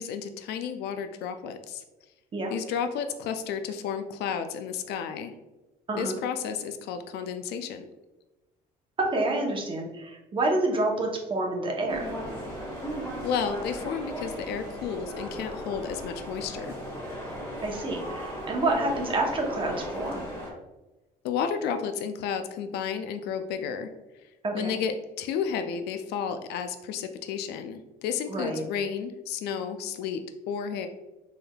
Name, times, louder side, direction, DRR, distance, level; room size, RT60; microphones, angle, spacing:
voice 1, 0.0-1.8 2.5-5.3 6.0-7.8 13.2-16.7 21.2-23.9 24.5-30.2 30.5-30.9, left 7 dB, 75° left, 8 dB, 0.4 m, -32 dB
voice 2, 9.0-12.1 17.6-20.3 24.4-24.8 28.3-28.6, right 2 dB, 30° right, 0 dB, 0.8 m, -28 dB
sound 1, 11.9-20.5, equal, 15° left, 1.4 m, -37 dB
4.5 x 3.3 x 2.3 m, 1.1 s
cardioid pair, 110°, 17 cm